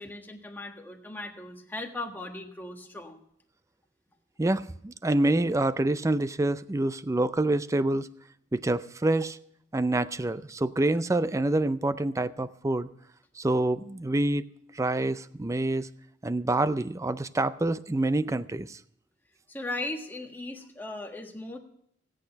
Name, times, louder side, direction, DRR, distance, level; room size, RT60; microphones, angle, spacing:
voice 1, 0.0-3.2 19.5-21.6, left 2 dB, 10° left, 2 dB, 1.5 m, -38 dB
voice 2, 4.4-8.1 8.5-9.4 9.7-12.9 13.4-14.4 14.7-15.9 16.2-18.8, right 2 dB, 15° right, 14 dB, 0.4 m, -27 dB
17.0 x 8.8 x 5.7 m, 0.70 s
head